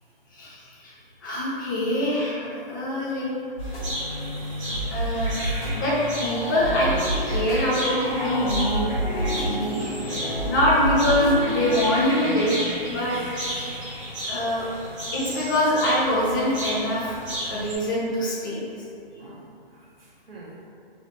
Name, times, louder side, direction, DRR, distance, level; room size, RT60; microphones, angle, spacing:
voice 1, 0.3-0.9 1.2-3.3 4.9-5.3 5.7-6.9 7.3-13.2 14.2-14.7 15.1-17.2 17.5-18.6, left 1 dB, 20° left, -6 dB, 0.5 m, -24 dB
sound 1, 3.6-16.1, right 1 dB, 35° left, 0.9 m, -32 dB
sound 2, 3.6-17.8, right 1 dB, 30° right, 0.7 m, -34 dB
Piano, 4.8-11.8, left 1 dB, 85° left, 0.7 m, -33 dB
voice 2, 5.4-5.8 13.1-13.8 19.2-19.4 19.7-20.6, right 2 dB, 70° right, -5 dB, 1.0 m, -48 dB
3.2 x 2.6 x 2.9 m, 2.5 s
hypercardioid pair, 145°, 30 cm